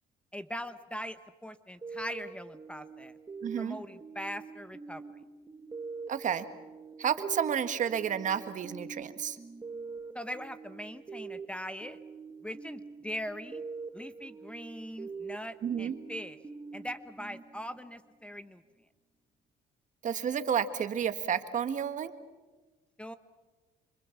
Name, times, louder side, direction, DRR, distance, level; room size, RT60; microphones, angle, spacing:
voice 1, 0.3-3.2 3.6-5.0 10.1-12.0 12.4-13.6 13.9-16.4 16.7-18.6 23.0-23.2, equal, 5° left, 12 dB, 1.0 m, -41 dB
sound 1, 1.8-18.1, right 4 dB, 20° right, 1.4 m, -45 dB
voice 2, 3.4-3.8 6.1-6.4 7.0-9.4 15.6-16.0 20.0-22.1, right 8 dB, 50° right, 11 dB, 1.6 m, -31 dB
26.5 x 25.0 x 7.2 m, 1.2 s
cardioid pair, 110°, 17 cm